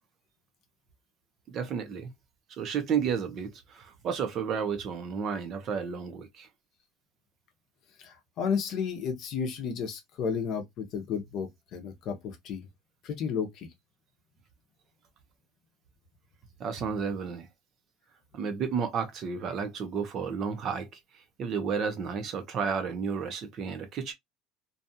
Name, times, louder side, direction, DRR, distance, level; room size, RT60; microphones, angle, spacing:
voice 1, 1.5-2.1 2.5-6.5 16.6-17.5 18.3-24.1, right 6 dB, 35° right, 0.6 m, -32 dB
voice 2, 8.0-12.7 13.0-13.7, left 6 dB, 40° left, 0.6 m, -32 dB
2.6 x 2.3 x 2.6 m
cardioid pair, 170°, 0 cm